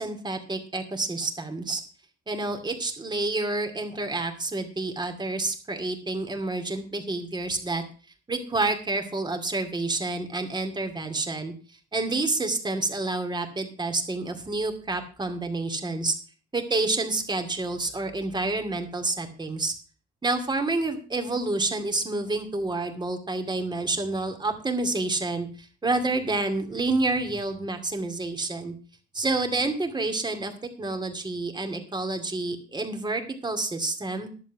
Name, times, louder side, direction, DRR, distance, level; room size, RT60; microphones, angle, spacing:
voice 1, 0.0-1.8 2.3-7.8 8.3-11.5 11.9-16.1 16.5-19.7 20.2-28.7 29.1-30.5 30.8-34.3, right 2 dB, 20° right, 6 dB, 2.4 m, -28 dB
11.0 x 7.5 x 6.1 m, 0.38 s
cardioid pair, 90°, 20 cm